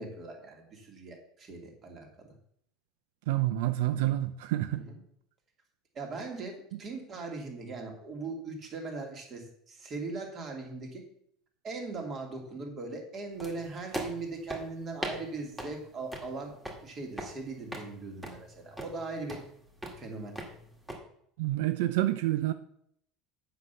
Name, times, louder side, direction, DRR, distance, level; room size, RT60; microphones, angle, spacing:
voice 1, 0.0-2.3 4.7-5.0 5.9-11.0 11.6-16.5 16.8-19.4 20.0-20.3, right 3 dB, 35° right, 2.6 m, -40 dB
voice 2, 3.3-4.8 21.4-22.5, right 15 dB, 85° right, 0.5 m, -28 dB
sound 1, 13.4-21.0, right 1 dB, 10° right, 1.9 m, -42 dB
8.2 x 6.0 x 6.9 m
cardioid pair, 145°, 0 cm